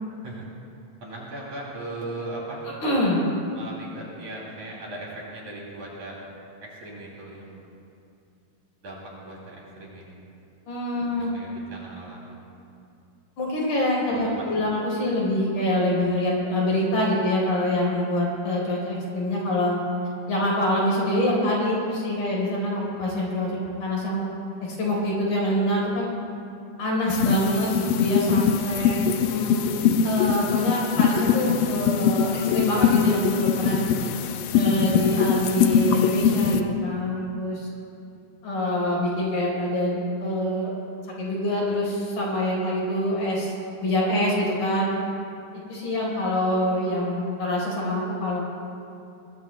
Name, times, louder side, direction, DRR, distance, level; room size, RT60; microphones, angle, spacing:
voice 1, 1.0-2.6 3.5-6.2 6.6-7.6 8.8-9.0 9.2-10.2 11.1-12.3 14.3-14.6 28.6-28.8, right 2 dB, 50° right, -4 dB, 4.0 m, -38 dB
voice 2, 2.8-3.2 10.7-11.3 13.4-19.8 20.3-24.2 24.6-26.1 26.8-29.7 30.0-33.8 34.5-37.7 38.4-40.7 41.2-43.5 43.8-44.9 45.7-48.4, left 1 dB, 65° left, -3 dB, 6.0 m, -25 dB
sound 1, 27.1-36.6, left 7 dB, 80° left, 2.1 m, -22 dB
23.5 x 20.5 x 2.3 m, 2.6 s
omnidirectional pair, 4.5 m